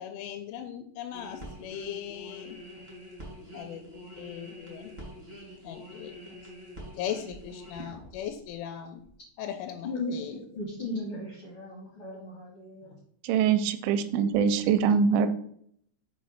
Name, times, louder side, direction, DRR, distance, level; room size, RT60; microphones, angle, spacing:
voice 1, 0.0-2.6 3.5-4.9 5.6-6.2 7.0-9.0 9.4-10.4, left 10 dB, 85° left, 6 dB, 3.1 m, -38 dB
sound 1, 1.1-8.5 9.0-9.1, equal, 50° right, 0.5 m, -46 dB
voice 2, 9.8-12.9, left 2 dB, 70° left, -4 dB, 1.3 m, -36 dB
voice 3, 13.2-15.3, right 7 dB, 85° right, 10 dB, 2.9 m, -23 dB
7.0 x 3.1 x 5.7 m, 0.65 s
omnidirectional pair, 5.4 m